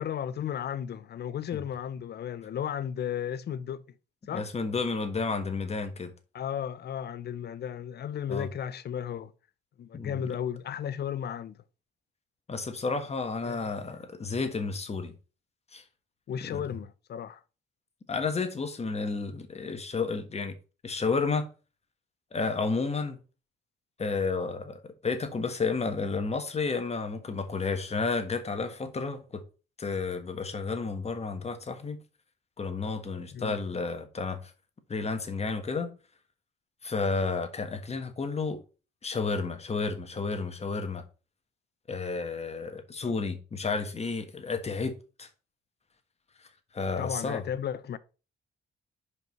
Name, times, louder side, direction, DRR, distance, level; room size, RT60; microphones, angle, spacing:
voice 1, 0.0-3.8 4.3-4.5 6.3-9.3 9.8-11.6 13.5-13.7 16.3-17.4 33.3-33.6 43.0-43.1 47.0-48.0, left 9 dB, 55° left, 0.7 m, -34 dB
voice 2, 4.3-6.1 8.3-8.5 9.9-10.3 12.5-15.2 15.7-15.8 16.4-16.6 18.1-20.5 20.8-21.5 22.3-23.2 24.0-29.4 29.8-32.0 32.6-34.5 34.9-35.9 36.8-38.6 39.0-41.0 41.9-45.3 46.7-47.4, left 4 dB, 30° left, 1.5 m, -31 dB
5.2 x 4.8 x 5.3 m
cardioid pair, 90°, 20 cm